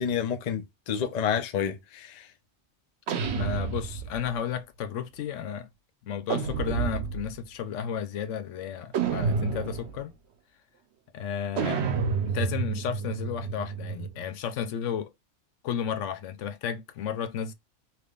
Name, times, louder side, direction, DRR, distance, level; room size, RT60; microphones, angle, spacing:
voice 1, 0.0-2.3, left 8 dB, 45° left, 0.5 m, -29 dB
sound 1, 3.1-4.4 6.3-7.4 8.9-10.0 11.6-14.2, right 6 dB, 65° right, 0.8 m, -29 dB
voice 2, 3.3-5.7 6.0-10.1 11.1-11.8 12.3-15.1 15.6-17.5, left 8 dB, 80° left, 0.9 m, -33 dB
3.4 x 2.9 x 2.3 m
omnidirectional pair, 1.2 m